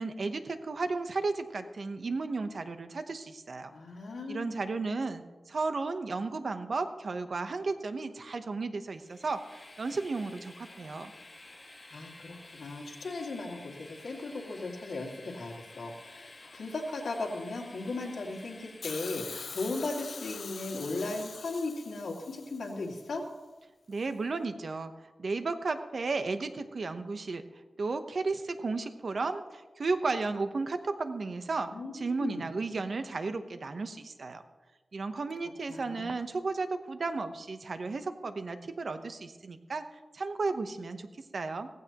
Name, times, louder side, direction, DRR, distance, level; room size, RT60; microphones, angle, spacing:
voice 1, 0.0-3.7 4.3-11.1 23.9-27.4 27.8-34.4 34.9-41.7, right 3 dB, 55° right, 9 dB, 0.9 m, -34 dB
voice 2, 3.7-4.5 11.9-23.2 31.7-32.4 35.7-36.1, left 3 dB, 85° left, -1 dB, 2.3 m, -37 dB
Train, 8.9-19.4, left 2 dB, 30° left, 1.5 m, -52 dB
Hiss, 18.8-23.0 24.0-24.1, left 5 dB, 60° left, 0.4 m, -43 dB
16.5 x 15.5 x 3.0 m, 1.2 s
wide cardioid pair, 140°, 0 cm